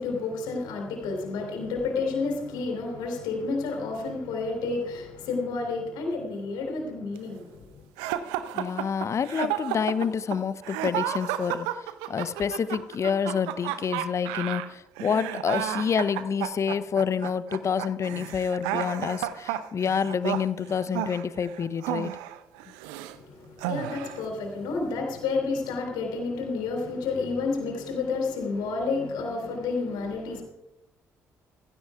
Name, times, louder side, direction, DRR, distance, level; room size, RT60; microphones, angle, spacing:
voice 1, 0.0-7.7 23.1-30.4, left 4 dB, 60° left, 0 dB, 3.3 m, -30 dB
sound 1, 8.0-23.2 23.6-24.3, right 12 dB, 70° right, 0.6 m, -32 dB
voice 2, 8.5-22.1, left 6 dB, 35° left, 16 dB, 0.6 m, -28 dB
16.0 x 15.5 x 2.4 m, 0.98 s
figure-of-eight pair, 45°, 8 cm